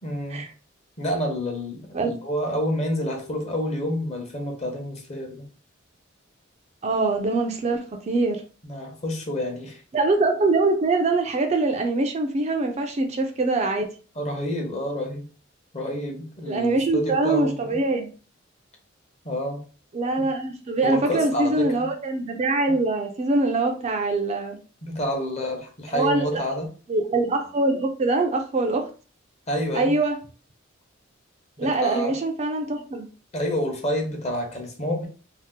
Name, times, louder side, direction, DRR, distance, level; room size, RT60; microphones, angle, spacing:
voice 1, 0.0-0.4 1.0-5.5 8.6-9.8 14.2-15.2 15.7-17.8 19.2-19.6 20.2-20.3 20.8-21.9 24.8-26.7 29.5-29.9 31.6-32.2 33.3-35.1, equal, 35° left, 0.8 m, -28 dB
voice 2, 6.8-8.4 9.9-13.9 16.5-18.1 19.9-24.6 25.9-26.4 26.9-28.9 29.7-30.2 31.6-33.1, right 2 dB, 35° right, 0.4 m, -23 dB
2.7 x 2.0 x 3.6 m
head